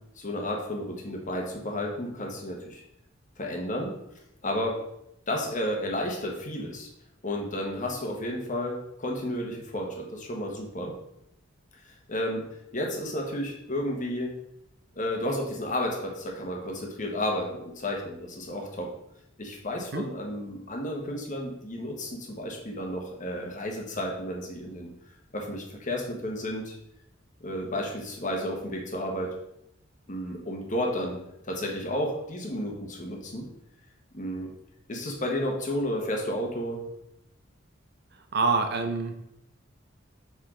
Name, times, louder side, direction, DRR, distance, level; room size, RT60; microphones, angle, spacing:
voice 1, 0.2-2.8 3.4-3.9 4.4-4.8 5.3-6.9 7.2-10.9 12.1-12.4 12.7-14.3 15.0-18.9 19.4-24.9 25.3-26.8 27.4-29.3 30.1-31.2 31.5-33.5 34.1-34.5 34.9-36.8, left 1 dB, 40° left, 0 dB, 1.2 m, -32 dB
voice 2, 38.3-39.2, right 4 dB, 50° right, 6 dB, 0.6 m, -26 dB
5.5 x 4.9 x 3.7 m, 0.81 s
head